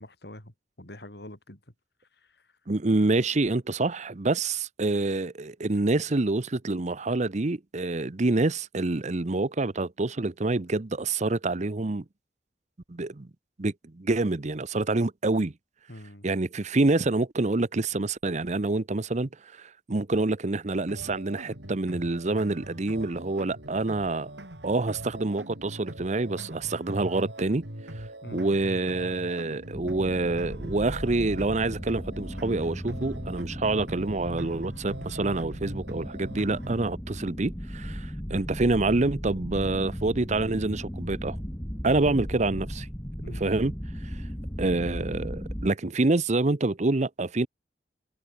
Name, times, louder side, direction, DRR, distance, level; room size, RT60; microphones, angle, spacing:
voice 1, 0.0-1.6 2.2-2.5 15.9-16.3 28.2-28.5 29.9-30.0 42.0-42.6 43.2-43.5, left 1 dB, 65° left, 4.9 m, -45 dB
voice 2, 2.7-12.0 12.9-13.3 13.6-15.5 16.2-24.3 24.6-27.7 28.0-28.1 28.3-41.4 41.8-42.9 43.3-43.7 44.6-47.5, right 2 dB, 40° right, 0.8 m, -27 dB
sound 1, 20.9-36.9, right 1 dB, 85° right, 6.0 m, -42 dB
sound 2, 29.7-45.7, equal, 15° left, 3.4 m, -37 dB
head